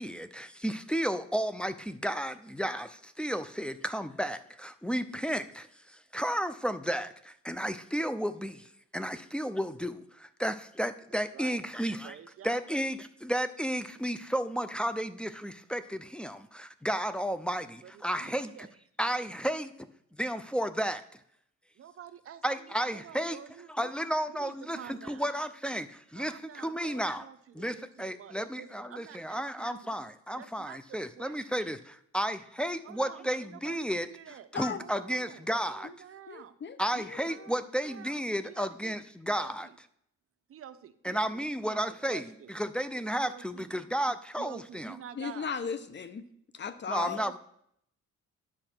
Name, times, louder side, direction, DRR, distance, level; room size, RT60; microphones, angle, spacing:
voice 1, 0.0-12.2 12.4-18.7 19.0-19.7 20.2-21.0 22.4-23.4 23.8-27.3 27.5-34.1 34.5-35.9 36.8-39.7 41.0-44.9 46.9-47.4, equal, 5° left, 9 dB, 0.5 m, -33 dB
voice 2, 11.1-11.6 12.0-12.6 17.8-18.7 21.8-23.9 24.3-25.3 26.1-29.9 30.4-31.8 32.8-34.5 34.8-36.5 37.3-39.0 39.3-39.8 40.5-41.2 41.6-41.8 42.1-42.5 43.2-43.7 44.4-45.5 47.0-47.4, right 9 dB, 50° right, 11 dB, 0.7 m, -49 dB
voice 3, 36.3-37.5 45.1-46.3 46.5-47.2, left 6 dB, 35° left, 12 dB, 0.8 m, -37 dB
9.9 x 5.8 x 4.4 m, 0.72 s
cardioid pair, 90°, 30 cm